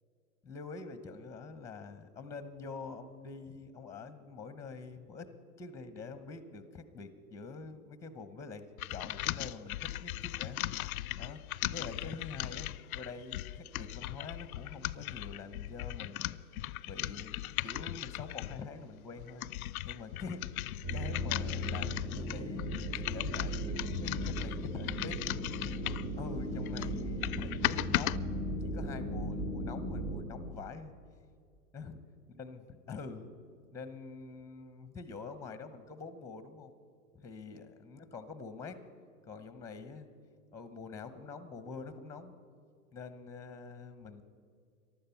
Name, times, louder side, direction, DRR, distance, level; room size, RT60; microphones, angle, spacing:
voice 1, 0.4-5.3 5.6-10.6 11.2-11.4 11.7-12.7 12.9-16.4 16.8-19.5 19.8-25.4 26.2-28.3 28.6-30.9 31.7-32.0 32.3-32.6 32.9-33.3 33.7-36.7 37.1-38.8 39.3-40.1 40.5-42.3 42.9-44.2, left 4 dB, 5° left, 12 dB, 0.9 m, -46 dB
sound 1, 8.8-18.6 19.2-26.1 26.6-28.2, left 15 dB, 80° left, 0.5 m, -38 dB
sound 2, 20.8-30.2, equal, 60° right, 3.6 m, -37 dB
15.5 x 11.5 x 5.8 m, 2.3 s
hypercardioid pair, 115°, 43 cm